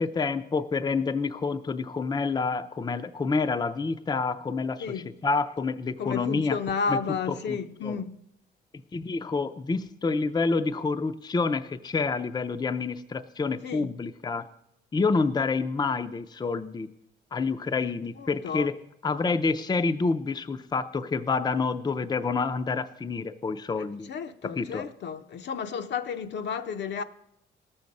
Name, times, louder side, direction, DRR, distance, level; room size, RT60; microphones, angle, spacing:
voice 1, 0.0-6.6 6.9-7.0 7.3-8.0 8.9-14.5 14.9-16.9 17.3-18.7 19.0-24.1 24.6-24.8, left 4 dB, 20° left, 0.5 m, -28 dB
voice 2, 4.8-5.1 6.0-8.2 13.6-14.0 18.2-18.7 24.1-27.0, left 6 dB, 60° left, 0.7 m, -32 dB
17.5 x 7.1 x 5.3 m
cardioid pair, 90°, 20 cm